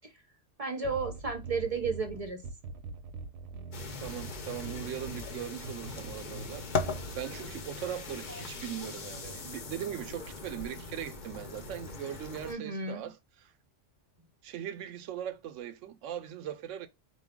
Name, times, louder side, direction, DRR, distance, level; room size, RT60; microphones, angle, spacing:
voice 1, 0.6-2.4 12.5-13.1, right 4 dB, 40° right, 0.6 m, -33 dB
sound 1, 0.8-7.2, right 3 dB, 65° right, 0.8 m, -43 dB
sound 2, 3.7-12.5, left 4 dB, 45° left, 0.7 m, -39 dB
voice 2, 4.0-13.5 14.4-16.9, right 10 dB, 90° right, 0.9 m, -40 dB
4.3 x 2.3 x 3.5 m
omnidirectional pair, 1.2 m